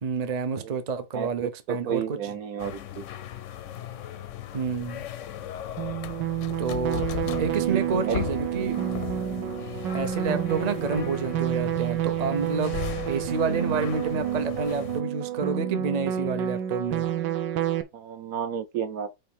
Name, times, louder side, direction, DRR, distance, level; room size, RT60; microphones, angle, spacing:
voice 1, 0.0-2.3 4.5-5.1 6.6-7.1 7.4-8.8 9.9-12.8 13.1-17.1, right 5 dB, 45° right, 0.5 m, -29 dB
voice 2, 1.7-3.0 8.1-8.2 17.9-19.1, right 7 dB, 65° right, 1.0 m, -31 dB
sound 1, 2.6-15.0, left 11 dB, 65° left, 0.7 m, -39 dB
sound 2, 4.5-11.1, left 14 dB, 90° left, 1.3 m, -38 dB
sound 3, 5.8-17.8, right 11 dB, 85° right, 1.5 m, -29 dB
5.5 x 4.4 x 5.3 m
omnidirectional pair, 1.9 m